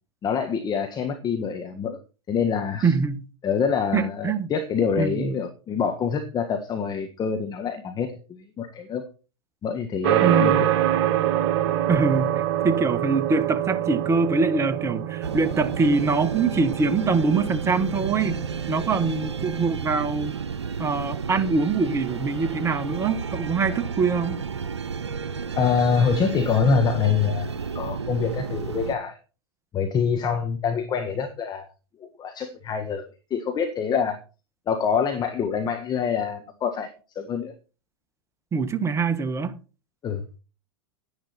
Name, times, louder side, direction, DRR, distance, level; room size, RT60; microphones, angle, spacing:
voice 1, 0.2-2.0 2.3-2.9 3.4-9.0 9.6-10.7 25.5-29.2 29.7-31.7 32.0-34.2 34.7-36.9 37.1-37.5 40.0-40.2, left 6 dB, 30° left, 1.6 m, -25 dB
voice 2, 2.8-3.3 3.9-4.5 5.0-5.4 10.2-10.7 11.9-20.3 20.8-24.4 38.5-39.6, right 4 dB, 20° right, 1.3 m, -24 dB
sound 1, 10.0-19.7, right 11 dB, 50° right, 1.8 m, -26 dB
sound 2, 15.2-29.0, right 6 dB, 90° right, 0.8 m, -32 dB
10.5 x 10.5 x 4.3 m
hypercardioid pair, 100°, 14 cm